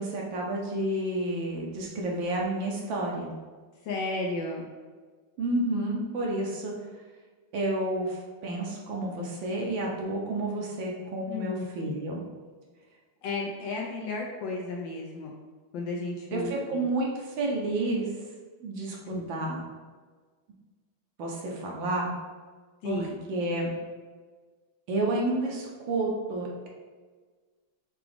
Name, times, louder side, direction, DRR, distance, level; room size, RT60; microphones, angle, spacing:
voice 1, 0.0-3.3 5.4-6.7 7.5-12.2 16.3-18.1 18.6-19.6 21.2-22.1 22.8-23.7 24.9-26.7, right 2 dB, 70° right, -2 dB, 1.4 m, -30 dB
voice 2, 3.8-4.7 11.3-11.9 13.2-15.3 15.7-16.9 19.1-19.3 22.8-23.2, left 3 dB, 75° left, -1 dB, 1.1 m, -33 dB
6.0 x 2.3 x 3.4 m, 1.5 s
omnidirectional pair, 2.4 m